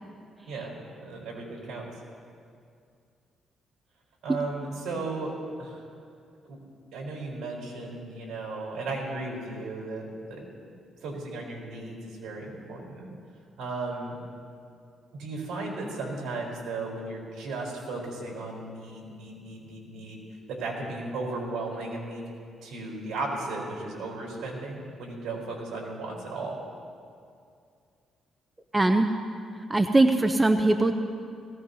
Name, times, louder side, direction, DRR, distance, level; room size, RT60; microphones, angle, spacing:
voice 1, 1.0-1.9 4.2-5.3 5.6-5.9 6.4-6.6 6.9-10.7 11.0-13.1 13.6-14.2 15.2-20.2 20.5-22.3 22.6-26.6, right 3 dB, 75° right, -2 dB, 3.9 m, -35 dB
voice 2, 28.7-29.1 29.7-30.9, right 2 dB, 20° right, 7 dB, 0.6 m, -21 dB
18.5 x 16.5 x 2.8 m, 2.4 s
cardioid pair, 90°, 0 cm